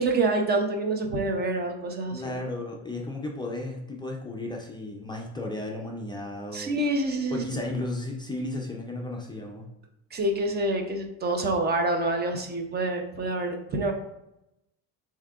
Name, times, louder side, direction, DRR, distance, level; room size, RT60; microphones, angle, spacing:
voice 1, 0.0-2.3 6.5-7.7 10.1-13.9, right 2 dB, 25° right, 4 dB, 0.6 m, -27 dB
voice 2, 2.1-6.7 7.3-9.7, left 2 dB, 10° left, -1 dB, 0.4 m, -34 dB
7.0 x 2.8 x 2.4 m, 0.86 s
cardioid pair, 130°, 39 cm